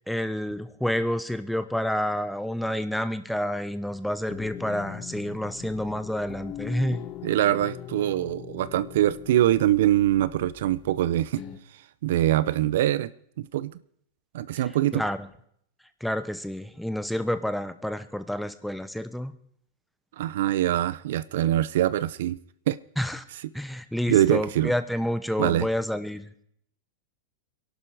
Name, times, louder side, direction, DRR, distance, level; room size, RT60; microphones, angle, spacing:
voice 1, 0.1-7.1 14.9-15.3 16.0-19.3 23.0-23.2 23.5-26.3, left 1 dB, ahead, 12 dB, 0.9 m, -29 dB
sound 1, 4.3-11.6, left 10 dB, 30° left, 1.3 m, -41 dB
voice 2, 7.2-11.4 12.0-13.1 13.4-13.7 14.3-15.0 20.2-22.4 22.7-22.8 24.1-24.7 25.4-25.7, right 13 dB, 70° right, 17 dB, 0.7 m, -23 dB
22.5 x 11.5 x 4.9 m, 0.68 s
supercardioid pair, 145°, 0 cm